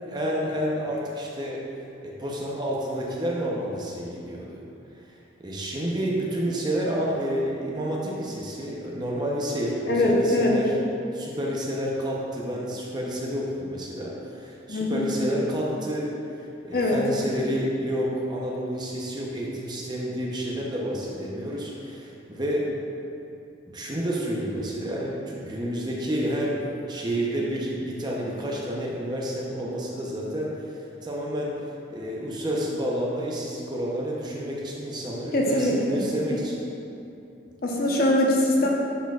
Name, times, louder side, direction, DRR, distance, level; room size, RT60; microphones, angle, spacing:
voice 1, 0.0-1.6 2.0-4.6 5.4-10.7 11.1-16.1 16.7-22.7 23.7-31.5 31.9-36.5, equal, 20° right, -4 dB, 0.7 m, -29 dB
voice 2, 9.9-10.5 14.7-15.1 16.7-17.0 35.3-36.0 37.6-38.7, left 1 dB, 50° left, -2 dB, 0.8 m, -22 dB
10.0 x 4.6 x 2.4 m, 2.8 s
head